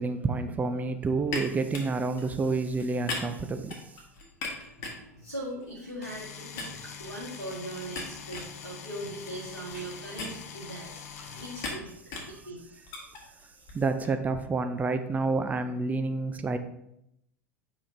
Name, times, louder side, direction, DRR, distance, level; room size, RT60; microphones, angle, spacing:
voice 1, 0.0-3.7 13.7-16.6, right 3 dB, 20° right, 8 dB, 0.5 m, -29 dB
sound 1, 1.3-6.3 6.6-14.1, left 3 dB, 45° left, 1.6 m, -41 dB
voice 2, 4.6-11.9 12.3-12.8, right 1 dB, 90° right, -10 dB, 1.7 m, -40 dB
sound 2, 6.0-11.7, left 7 dB, 60° left, 0.7 m, -44 dB
8.3 x 4.9 x 2.7 m, 0.78 s
figure-of-eight pair, 80°, 9 cm